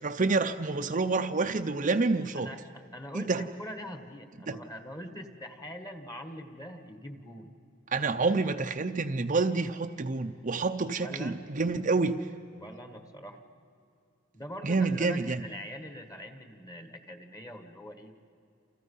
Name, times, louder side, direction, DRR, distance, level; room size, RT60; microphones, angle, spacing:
voice 1, 0.0-2.5 3.1-3.5 4.5-4.6 7.9-12.3 14.6-15.4, right 3 dB, 40° right, 6 dB, 0.6 m, -28 dB
voice 2, 2.3-7.5 11.0-11.4 12.6-13.4 14.3-18.1, equal, 20° left, 7 dB, 1.5 m, -43 dB
29.0 x 28.0 x 5.5 m, 2.5 s
head